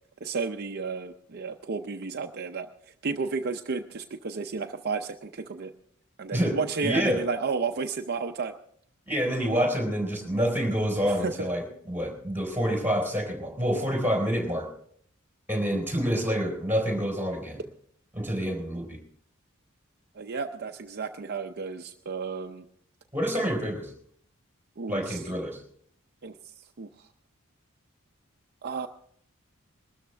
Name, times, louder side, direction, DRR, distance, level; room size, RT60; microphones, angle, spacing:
voice 1, 0.2-2.7 3.0-5.7 6.2-8.5 11.0-11.5 20.2-22.6 24.8-25.2 26.2-26.3 26.8-26.9 28.6-28.9, right 4 dB, 50° right, 5 dB, 0.6 m, -32 dB
voice 2, 6.3-7.2 9.1-14.7 15.5-17.6 18.1-19.0 23.1-23.9 24.9-25.6, equal, 10° right, 2 dB, 4.1 m, -27 dB
21.5 x 13.0 x 3.4 m, 0.64 s
head